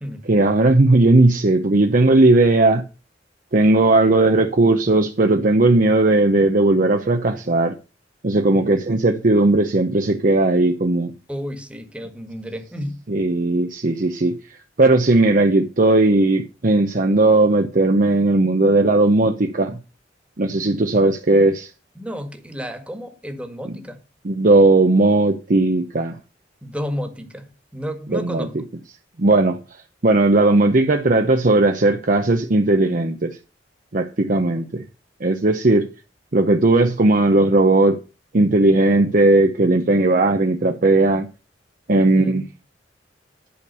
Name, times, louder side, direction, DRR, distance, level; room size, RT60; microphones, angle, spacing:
voice 1, 0.3-2.8 3.5-7.7 8.2-11.1 13.1-14.3 14.8-19.8 20.4-21.7 24.2-26.2 28.1-28.5 29.2-29.6 30.0-33.3 33.9-34.8 35.2-35.9 36.3-38.0 38.3-41.3 41.9-42.4, right 2 dB, 45° right, 0.8 m, -17 dB
voice 2, 11.3-13.0 21.9-24.0 26.6-28.7 34.5-34.6 41.9-42.5, equal, 5° right, 1.7 m, -32 dB
11.0 x 5.2 x 6.7 m
head